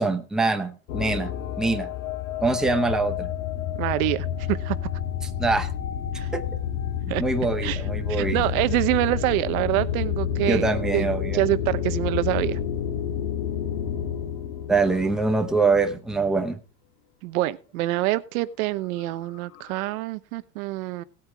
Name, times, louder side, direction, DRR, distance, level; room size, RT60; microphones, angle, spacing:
voice 1, 0.0-1.9 2.4-3.3 5.4-5.7 6.3-6.4 7.2-8.4 10.5-11.4 14.7-16.6, right 3 dB, ahead, 5 dB, 0.8 m, -24 dB
sound 1, 0.9-15.8 19.0-19.1 19.3-19.9, left 9 dB, 70° left, 2.1 m, -29 dB
voice 2, 3.8-4.8 6.1-6.3 7.1-7.2 7.6-7.8 8.1-10.7 10.9-12.6 17.2-21.0, right 18 dB, 70° right, 15 dB, 1.0 m, -26 dB
sound 2, 6.7-9.3 9.7-12.3 12.7-15.3 15.7-16.4, left 2 dB, 30° left, 6.2 m, -47 dB
18.0 x 8.8 x 3.5 m, 0.33 s
supercardioid pair, 175°, 44 cm